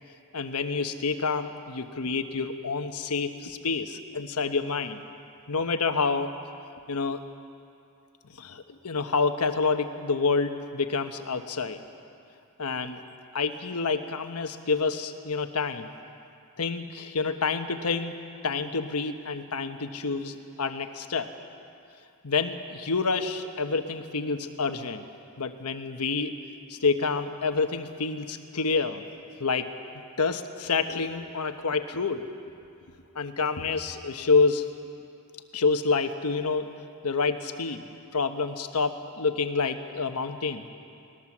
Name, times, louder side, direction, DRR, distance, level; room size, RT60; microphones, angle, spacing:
voice 1, 0.3-5.0 5.5-6.3 6.9-7.2 8.4-11.8 12.6-13.0 13.3-15.9 16.6-18.2 18.4-21.3 22.2-25.0 25.4-26.4 26.7-29.0 29.4-29.7 30.2-32.2 33.1-34.7 35.5-36.7 37.0-37.8 38.1-40.7, left 4 dB, 85° left, 7 dB, 1.2 m, -28 dB
20.0 x 19.5 x 7.4 m, 2.5 s
head